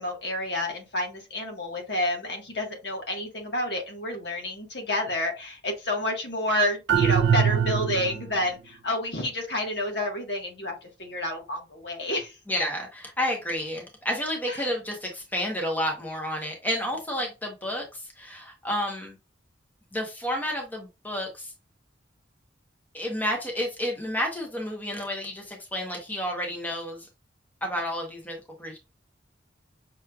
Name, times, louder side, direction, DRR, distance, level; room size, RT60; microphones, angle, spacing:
voice 1, 0.0-12.4 14.5-14.7, left 1 dB, 60° left, 1.5 m, -29 dB
sound 1, 6.9-8.4, right 7 dB, 60° right, 0.4 m, -22 dB
voice 2, 12.5-19.1 19.9-21.5 22.9-27.1 27.6-28.8, equal, 10° left, 1.0 m, -30 dB
5.9 x 3.1 x 2.3 m
head